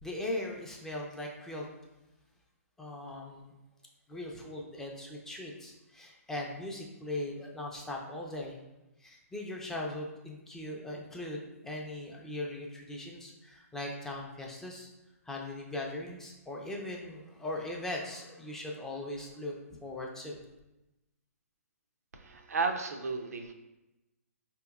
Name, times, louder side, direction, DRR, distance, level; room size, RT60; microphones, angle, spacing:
voice 1, 0.0-1.7 2.8-3.5 4.1-8.6 9.0-14.9 15.2-19.5 19.8-20.4, left 1 dB, 5° left, -1 dB, 0.4 m, -39 dB
voice 2, 22.1-23.5, right 4 dB, 80° right, 5 dB, 0.5 m, -33 dB
4.4 x 2.9 x 2.3 m, 0.97 s
hypercardioid pair, 140°, 8 cm